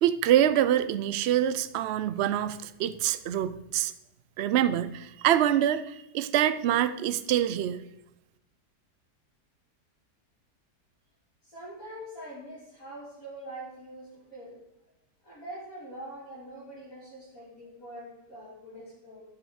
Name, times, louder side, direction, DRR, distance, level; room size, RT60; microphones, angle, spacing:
voice 1, 0.0-3.9 4.4-7.8, right 11 dB, 80° right, 13 dB, 0.5 m, -25 dB
voice 2, 11.4-14.6 15.2-19.2, right 1 dB, 50° left, -11 dB, 4.1 m, -44 dB
12.0 x 7.2 x 4.8 m, 0.89 s
omnidirectional pair, 1.8 m